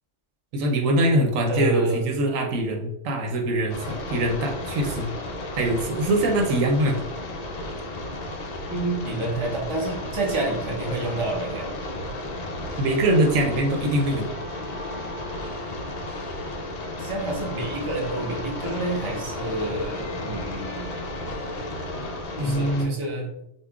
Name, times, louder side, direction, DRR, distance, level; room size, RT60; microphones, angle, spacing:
voice 1, 0.5-5.1 5.6-7.0 12.8-14.3 22.4-22.9, right 1 dB, 90° right, 2 dB, 1.1 m, -23 dB
voice 2, 1.5-2.1 8.7-11.7 17.0-21.0 22.4-23.3, right 2 dB, 30° right, -2 dB, 0.8 m, -28 dB
sound 1, 3.7-22.9, left 1 dB, 60° left, 0.4 m, -34 dB
sound 2, 11.4-22.3, equal, 35° left, 0.9 m, -41 dB
5.2 x 2.4 x 2.4 m, 0.83 s
omnidirectional pair, 1.3 m